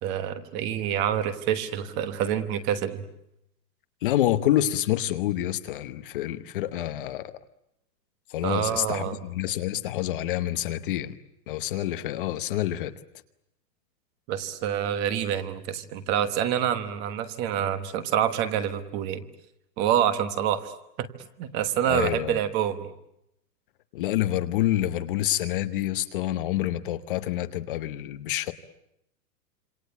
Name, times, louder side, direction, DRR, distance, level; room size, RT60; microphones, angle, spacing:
voice 1, 0.0-3.0 8.4-9.2 14.3-19.2 19.8-20.7 21.0-21.1 21.4-22.9, right 9 dB, 20° right, 1.2 m, -27 dB
voice 2, 4.0-7.3 8.3-11.1 11.5-12.9 21.9-22.4 23.9-28.5, left 13 dB, 35° left, 1.0 m, -27 dB
27.0 x 25.5 x 8.2 m
hypercardioid pair, 165°, 48 cm